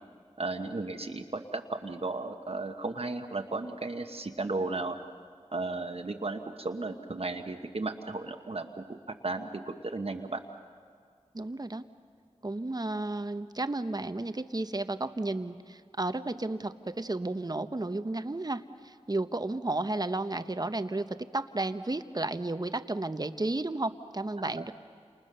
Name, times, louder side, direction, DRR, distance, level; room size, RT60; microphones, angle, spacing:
voice 1, 0.4-5.0 5.5-9.0 9.2-10.4 24.6-24.7, right 3 dB, 55° right, 4 dB, 1.2 m, -35 dB
voice 2, 11.3-11.8 12.4-24.7, right 2 dB, 35° right, 10 dB, 0.9 m, -33 dB
29.0 x 28.0 x 6.7 m, 2.1 s
wide cardioid pair, 70°, 12 cm